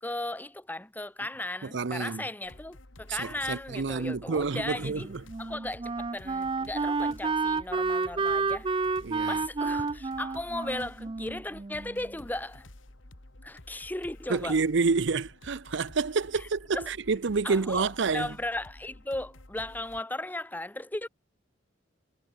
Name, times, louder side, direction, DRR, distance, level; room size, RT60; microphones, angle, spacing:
voice 1, 0.0-5.1 5.4-8.7 9.3-12.7 13.4-14.6 16.4-16.5 16.7-16.9 17.4-21.1, left 1 dB, 10° left, 0.9 m, -36 dB
voice 2, 1.7-2.2 3.1-5.0 9.0-9.4 14.3-18.3, right 4 dB, 65° right, 0.6 m, -28 dB
sound 1, 2.4-20.0, left 1 dB, 85° left, 2.4 m, -51 dB
Wind instrument woodwind instrument, 4.8-12.1, right 4 dB, 25° right, 0.5 m, -30 dB
head